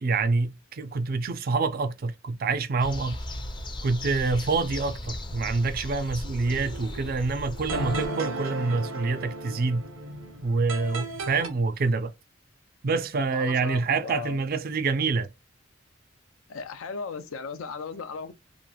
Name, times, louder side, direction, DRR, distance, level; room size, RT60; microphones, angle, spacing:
voice 1, 0.0-3.2 3.8-9.9 10.4-12.1 12.8-15.3, right 4 dB, 45° right, 0.4 m, -26 dB
sound 1, 2.8-8.1, left 1 dB, 25° left, 0.5 m, -37 dB
sound 2, 6.5-11.5, right 2 dB, 80° right, 0.8 m, -35 dB
voice 2, 13.3-14.4 16.5-18.3, left 4 dB, 85° left, 0.5 m, -36 dB
3.0 x 2.4 x 2.2 m
head